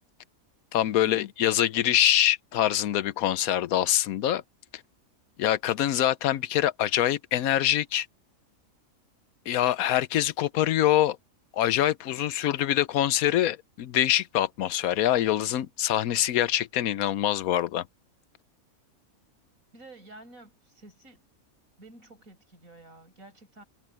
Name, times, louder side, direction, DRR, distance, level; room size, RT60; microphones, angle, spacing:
voice 1, 0.7-4.4 5.4-8.1 9.5-11.2 11.5-17.8, left 12 dB, 80° left, 1.1 m, -24 dB
voice 2, 19.7-21.3 21.8-23.6, right 2 dB, 75° right, 7.1 m, -50 dB
omnidirectional pair, 1.5 m